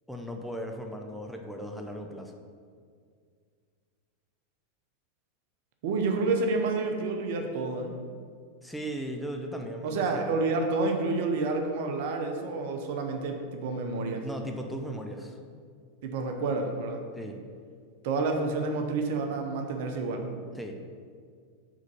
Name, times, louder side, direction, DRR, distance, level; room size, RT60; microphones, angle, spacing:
voice 1, 0.1-2.3 8.6-10.2 14.0-15.4 17.1-17.4 20.6-20.7, equal, ahead, 2 dB, 0.6 m, -37 dB
voice 2, 5.8-8.0 9.8-14.2 16.0-17.0 18.0-20.3, right 3 dB, 60° right, 4 dB, 0.7 m, -29 dB
5.0 x 4.0 x 5.4 m, 2.1 s
hypercardioid pair, 95°, 0 cm